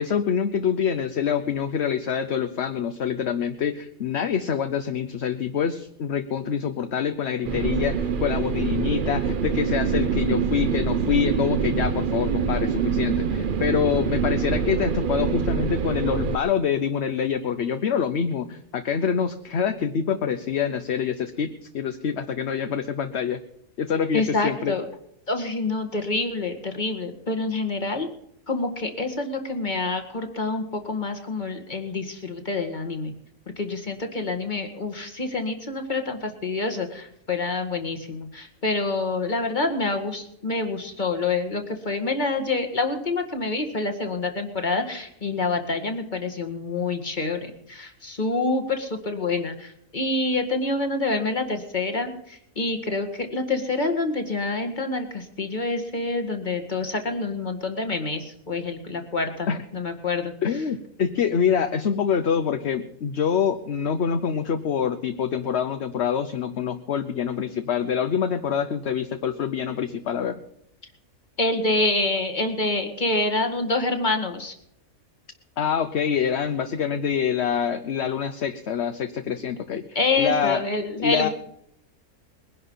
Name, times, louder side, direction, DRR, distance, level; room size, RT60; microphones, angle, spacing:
voice 1, 0.0-23.4 23.8-24.7 59.5-59.6 60.4-70.4 75.6-80.6 81.0-81.3, left 7 dB, 55° left, 9 dB, 1.0 m, -26 dB
sound 1, 7.4-16.4, right 6 dB, 45° right, 0.7 m, -25 dB
voice 2, 24.1-24.9 25.3-28.1 28.5-33.1 33.6-60.3 71.4-74.6 80.0-81.3, left 3 dB, 35° left, 6 dB, 2.0 m, -27 dB
21.0 x 11.0 x 5.6 m, 0.76 s
omnidirectional pair, 1.5 m